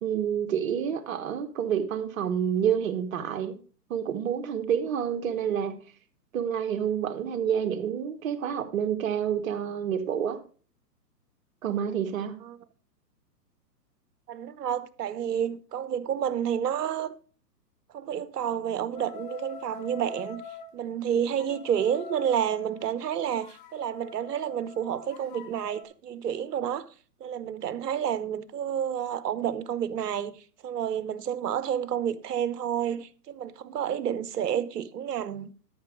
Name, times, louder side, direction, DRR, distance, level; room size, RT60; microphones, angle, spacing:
voice 1, 0.0-3.6 3.9-5.8 6.3-10.4 11.6-12.4, right 8 dB, 50° right, 1.4 m, -28 dB
voice 2, 14.3-17.1 17.9-20.4 20.7-26.8 27.2-30.3 30.6-35.5, right 9 dB, 70° right, 1.0 m, -30 dB
sound 1, 18.9-20.7 21.4-25.8, left 7 dB, 15° left, 0.9 m, -45 dB
13.0 x 6.0 x 4.8 m
hypercardioid pair, 140°, 50 cm